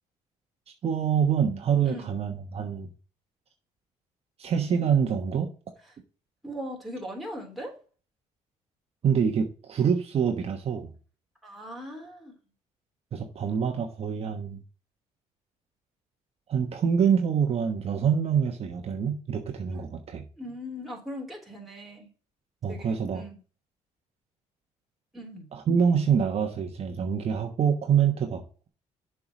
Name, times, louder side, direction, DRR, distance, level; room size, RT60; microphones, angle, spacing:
voice 1, 0.8-2.9 4.4-5.5 9.0-10.9 13.1-14.6 16.5-20.2 22.6-23.2 25.5-28.7, right 7 dB, 45° right, 4 dB, 1.1 m, -26 dB
voice 2, 6.4-7.7 11.4-12.3 19.7-19.9 20.4-22.1 22.7-23.4 25.1-25.5, equal, ahead, -1 dB, 3.3 m, -39 dB
7.1 x 4.9 x 5.0 m, 0.37 s
cardioid pair, 100°, 14 cm